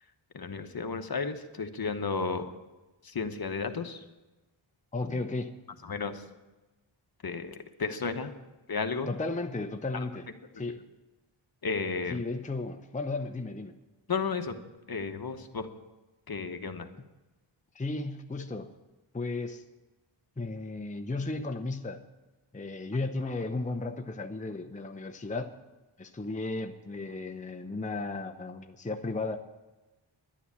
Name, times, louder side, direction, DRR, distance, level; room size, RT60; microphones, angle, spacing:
voice 1, 0.3-2.5 3.0-4.0 5.0-5.2 5.8-6.2 7.2-8.3 8.7-9.1 9.9-10.0 11.6-12.2 14.1-14.6 14.9-15.7 16.3-16.9, left 4 dB, 50° left, 7 dB, 1.2 m, -33 dB
voice 2, 4.9-5.5 9.1-10.3 10.5-10.8 12.1-13.7 17.0-17.1 17.7-18.7 19.1-19.7 20.4-22.1 22.5-25.5 26.0-29.4, left 3 dB, 15° left, 5 dB, 0.8 m, -34 dB
11.0 x 10.0 x 8.5 m, 1.1 s
wide cardioid pair, 65°, 48 cm